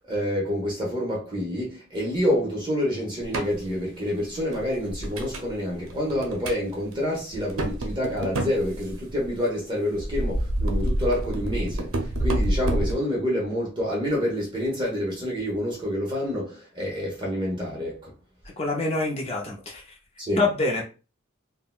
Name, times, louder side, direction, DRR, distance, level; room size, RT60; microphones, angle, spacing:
voice 1, 0.1-18.1 20.2-20.4, equal, 25° right, 0.9 m, -28 dB
sound 1, 3.2-3.6 4.2-5.5 5.9-6.6 6.9-7.0 7.3-9.3 9.9-12.9, right 1 dB, 85° right, 0.6 m, -28 dB
voice 2, 18.6-19.8 20.4-20.8, left 3 dB, 30° left, 0.5 m, -25 dB
3.6 x 2.1 x 2.3 m
head